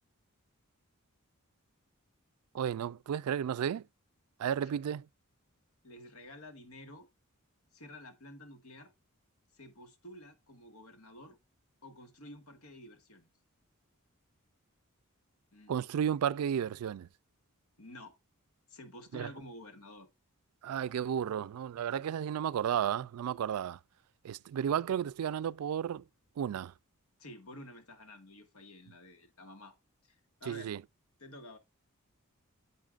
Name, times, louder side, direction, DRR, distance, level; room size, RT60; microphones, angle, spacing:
voice 1, 2.5-3.8 4.4-5.1 15.7-17.1 19.1-19.3 20.6-23.8 24.2-26.0 26.4-26.7 30.5-30.8, right 9 dB, 85° right, 0.3 m, -33 dB
voice 2, 5.8-7.1 7.7-8.9 9.5-11.4 11.8-13.3 15.5-15.7 17.8-18.1 18.7-20.1 27.2-29.7 30.0-30.1 30.4-30.7 31.2-31.6, left 1 dB, 80° left, 1.7 m, -50 dB
9.0 x 7.9 x 2.4 m
head